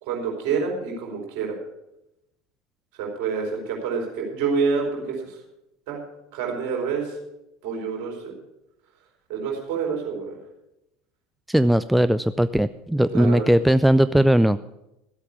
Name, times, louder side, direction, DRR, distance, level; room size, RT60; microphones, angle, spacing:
voice 1, 0.0-1.6 2.9-5.4 5.9-6.0 6.3-7.2 7.6-8.3 9.3-10.4 13.1-13.5, right 5 dB, 55° right, -1 dB, 4.6 m, -27 dB
voice 2, 11.5-14.6, right 1 dB, 5° right, 13 dB, 0.4 m, -19 dB
14.5 x 8.2 x 7.0 m, 0.89 s
figure-of-eight pair, 75°, 0 cm